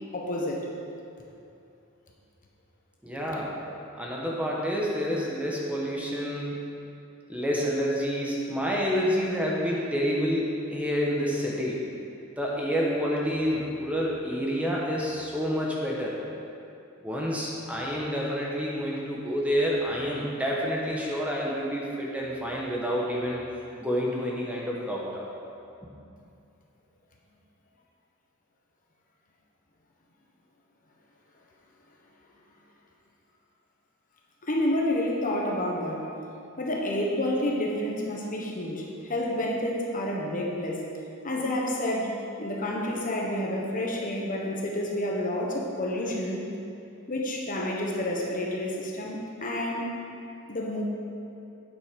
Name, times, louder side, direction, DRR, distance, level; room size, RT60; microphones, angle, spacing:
voice 1, 0.1-0.7 3.1-3.2 34.4-36.1 36.6-40.8 41.2-42.1 42.4-46.4 47.1-49.9 50.5-50.8, left 1 dB, 40° left, -2 dB, 1.2 m, -29 dB
voice 2, 3.0-3.6 4.0-6.6 7.3-11.8 12.4-16.2 17.0-23.4 23.8-25.2, equal, 5° right, -4 dB, 1.1 m, -28 dB
8.7 x 7.9 x 5.2 m, 2.7 s
head